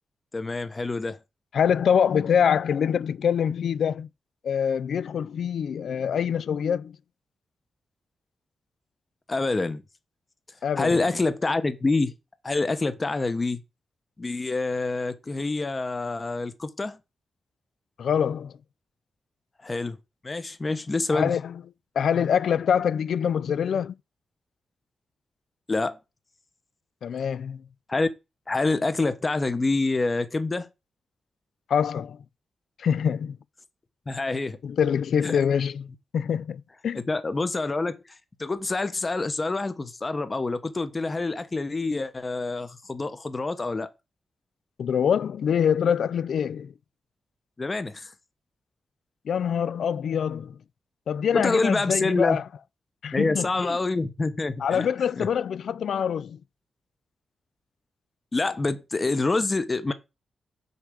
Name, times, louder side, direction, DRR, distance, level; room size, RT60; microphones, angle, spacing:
voice 1, 0.3-1.2 9.3-9.8 10.8-12.1 12.4-13.6 14.2-17.0 19.6-20.0 20.2-21.3 25.7-26.0 27.9-28.1 28.5-30.7 34.1-34.6 35.2-35.4 36.9-38.0 38.4-43.9 47.6-48.1 51.3-52.4 53.1-54.9 55.2-55.3 58.3-59.9, left 3 dB, 25° left, 0.9 m, -26 dB
voice 2, 1.5-4.1 4.4-7.0 10.6-11.0 18.0-18.5 21.1-21.5 22.0-24.0 27.0-27.6 31.7-32.2 32.8-33.4 34.6-37.0 44.8-46.7 49.3-50.6 51.1-52.4 53.0-53.8 54.6-56.4, left 8 dB, 75° left, 0.4 m, -25 dB
6.8 x 4.7 x 6.8 m
wide cardioid pair, 115°, 0 cm